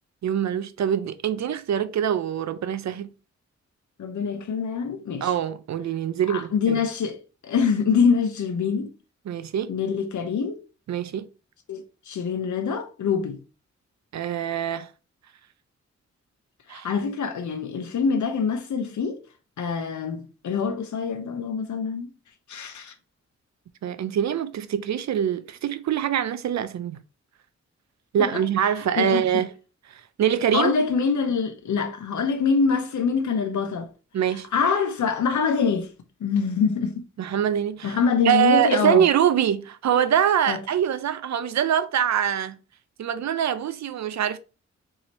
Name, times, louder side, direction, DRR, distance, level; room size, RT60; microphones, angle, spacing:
voice 1, 0.2-3.1 5.2-6.8 9.3-9.7 10.9-11.3 14.1-14.9 16.7-16.9 23.8-27.0 28.1-29.5 29.9-30.7 34.1-34.5 37.2-38.0 38.2-42.6 43.0-44.4, right 9 dB, 70° right, 0.5 m, -24 dB
voice 2, 4.0-5.3 6.3-7.2 7.4-8.9 9.7-10.6 11.7-13.4 16.7-19.2 19.6-22.1 22.5-22.9 28.2-28.4 29.0-29.2 30.5-33.9 34.5-35.9 36.2-36.9 37.8-39.0 40.5-40.6, left 5 dB, 85° left, 0.8 m, -24 dB
4.2 x 2.8 x 3.0 m
wide cardioid pair, 90°, 29 cm